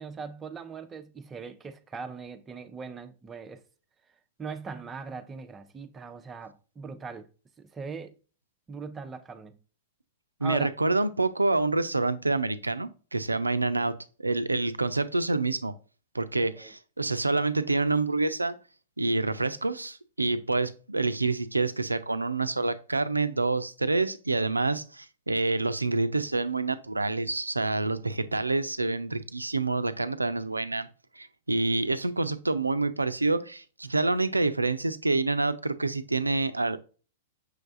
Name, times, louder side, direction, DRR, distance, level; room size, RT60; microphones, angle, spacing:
voice 1, 0.0-3.6 4.4-7.3 7.6-8.2 8.7-9.6 10.4-10.7 16.6-16.7, right 5 dB, 20° right, 0.6 m, -40 dB
voice 2, 10.4-13.9 14.2-15.7 16.1-18.6 19.0-30.9 31.2-36.8, right 3 dB, 85° right, 0.4 m, -27 dB
6.2 x 3.3 x 2.5 m
figure-of-eight pair, 100°, 0 cm